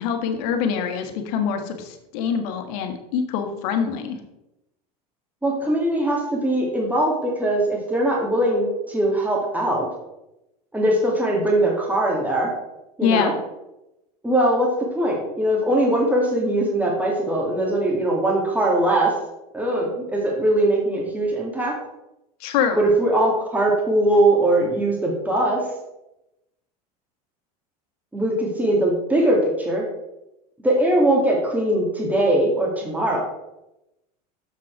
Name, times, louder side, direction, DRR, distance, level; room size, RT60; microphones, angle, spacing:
voice 1, 0.0-4.2 13.0-13.3 22.4-22.8, left 7 dB, 70° left, 5 dB, 1.4 m, -24 dB
voice 2, 5.4-9.9 10.7-12.5 13.0-13.3 14.2-14.7 14.9-19.1 19.5-21.7 22.8-25.6 28.1-29.9 30.6-33.2, right 1 dB, 10° right, -2 dB, 2.1 m, -21 dB
7.1 x 6.1 x 4.5 m, 0.91 s
hypercardioid pair, 90°, 20 cm